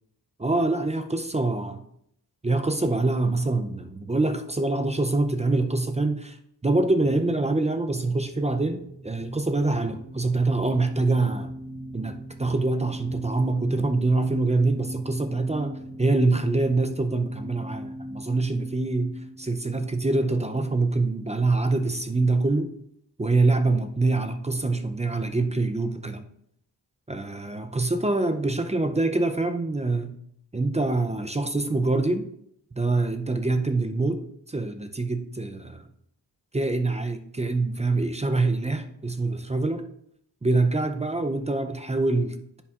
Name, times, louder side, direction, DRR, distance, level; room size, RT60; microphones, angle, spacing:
voice 1, 0.4-1.8 2.4-6.4 6.6-11.5 11.9-19.1 19.4-22.7 23.2-26.2 27.1-30.2 30.5-32.3 32.8-34.2 34.5-35.9 36.5-39.8 40.4-42.6, right 2 dB, 15° right, 7 dB, 0.4 m, -25 dB
sound 1, 8.3-20.5, right 1 dB, ahead, 1.1 m, -40 dB
10.0 x 7.1 x 2.4 m, 0.74 s
wide cardioid pair, 125°, 43 cm